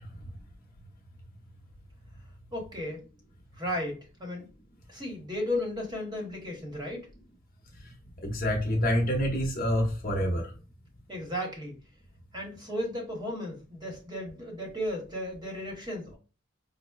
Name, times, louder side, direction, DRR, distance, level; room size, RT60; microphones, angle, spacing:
voice 1, 2.5-3.0 3.5-4.5 4.9-7.1 11.1-11.8 12.3-16.2, left 1 dB, 20° right, 0 dB, 1.0 m, -34 dB
voice 2, 8.2-10.4, equal, 40° left, 1 dB, 0.8 m, -27 dB
5.4 x 2.0 x 2.3 m, 0.33 s
head